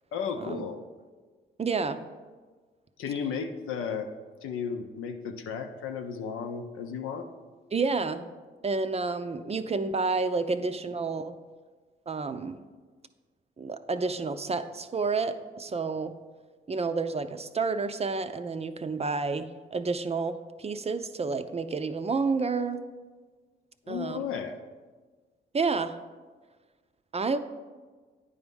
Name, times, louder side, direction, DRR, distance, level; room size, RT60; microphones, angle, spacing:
voice 1, 0.1-0.8 3.0-4.1 4.4-7.3 23.9-24.6, left 6 dB, 80° left, 6 dB, 0.6 m, -34 dB
voice 2, 1.6-2.0 7.7-8.3 8.6-11.3 12.1-12.6 13.6-16.1 16.7-22.8 23.9-24.2 25.5-26.0 27.1-27.4, right 4 dB, 30° right, 10 dB, 0.5 m, -30 dB
9.3 x 3.5 x 5.3 m, 1.4 s
supercardioid pair, 50°, 21 cm